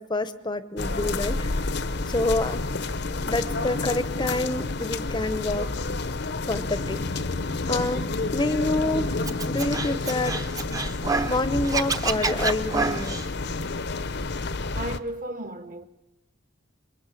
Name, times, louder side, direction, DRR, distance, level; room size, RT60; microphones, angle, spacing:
voice 1, 0.0-1.7 2.1-2.6 3.3-5.7 6.5-7.0 7.7-9.2 9.5-10.4 11.3-13.2, left 2 dB, 20° left, 0.9 m, -27 dB
sound 1, 0.8-15.0, left 3 dB, 55° left, 0.9 m, -29 dB
Scratching (performance technique), 9.3-11.4 11.6-13.2, right 4 dB, 20° right, 1.0 m, -27 dB
voice 2, 14.7-15.9, right 1 dB, 45° right, 1.6 m, -34 dB
27.0 x 23.0 x 8.4 m
head